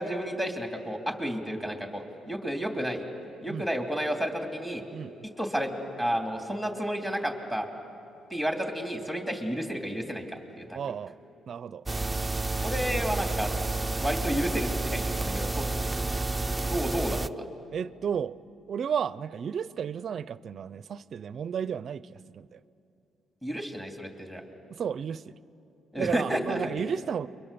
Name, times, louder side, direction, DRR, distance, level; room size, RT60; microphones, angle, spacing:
voice 1, 0.0-3.0 3.4-4.8 5.4-5.7 6.0-7.7 8.3-10.8 12.6-13.5 14.0-15.7 16.5-17.5 23.4-24.4 25.9-26.7, equal, 10° left, 2.9 m, -31 dB
voice 2, 10.7-11.1 11.5-11.8 17.7-18.4 18.7-22.6 24.7-25.3 26.0-27.3, right 7 dB, 55° right, 0.5 m, -33 dB
sound 1, 11.9-17.3, right 2 dB, 10° right, 0.5 m, -30 dB
29.0 x 23.5 x 6.9 m
cardioid pair, 90°, 0 cm